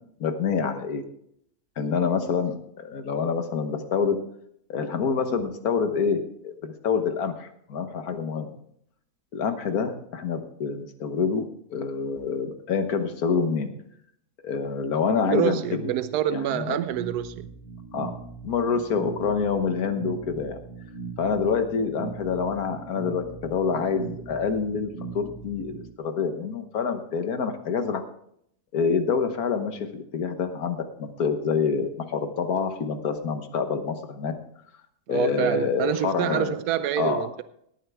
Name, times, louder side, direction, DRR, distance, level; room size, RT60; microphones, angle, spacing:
voice 1, 0.2-1.0 1.8-4.2 4.7-8.6 9.3-13.7 14.4-15.9 16.3-16.8 17.9-18.1 18.4-20.6 21.2-28.0 28.7-34.3 35.1-36.5 37.0-37.2, left 5 dB, 70° left, 1.7 m, -27 dB
voice 2, 15.2-17.5 35.1-37.4, right 11 dB, 85° right, 1.2 m, -27 dB
sound 1, 16.9-25.9, right 4 dB, 20° left, 3.3 m, -40 dB
18.0 x 9.1 x 3.5 m
omnidirectional pair, 1.6 m